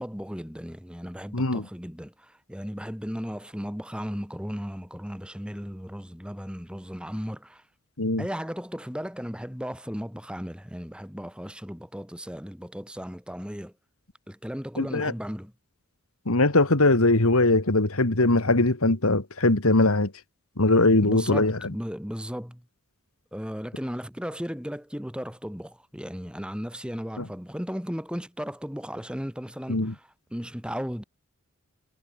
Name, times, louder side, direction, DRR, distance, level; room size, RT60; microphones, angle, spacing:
voice 1, 0.0-7.6 8.2-13.7 14.3-15.5 21.0-22.6 23.3-31.0, equal, 5° right, 5.1 m, -35 dB
voice 2, 1.3-1.6 8.0-8.2 14.8-15.1 16.3-20.1 20.6-21.6 27.2-27.3 29.7-29.9, left 2 dB, 75° left, 2.1 m, -21 dB
head